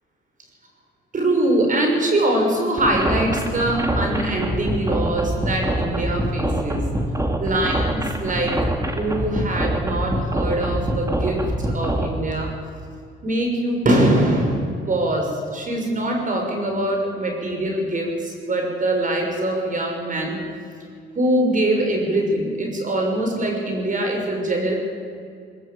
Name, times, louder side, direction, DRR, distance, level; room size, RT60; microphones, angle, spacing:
voice 1, 1.1-6.8 7.4-8.5 8.8-12.5 13.2-20.4 21.1-24.7, right 1 dB, 40° right, 2 dB, 6.3 m, -23 dB
sound 1, 2.8-12.1, right 1 dB, 15° right, 2.7 m, -24 dB
20.0 x 20.0 x 8.7 m, 2.2 s
cardioid pair, 90°, 20 cm